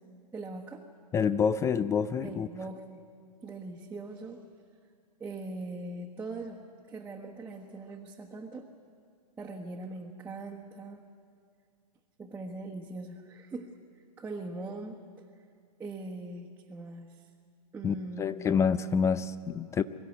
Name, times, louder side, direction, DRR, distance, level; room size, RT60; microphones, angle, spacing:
voice 1, 0.3-0.8 2.2-3.0 3.4-4.4 5.2-8.7 9.4-11.0 12.2-15.0 15.8-17.3 17.7-18.6, right 2 dB, 10° right, -1 dB, 1.4 m, -41 dB
voice 2, 1.1-2.5 17.8-19.8, left 6 dB, 15° left, 15 dB, 0.4 m, -27 dB
23.5 x 13.0 x 9.4 m, 2.3 s
figure-of-eight pair, 115°, 20 cm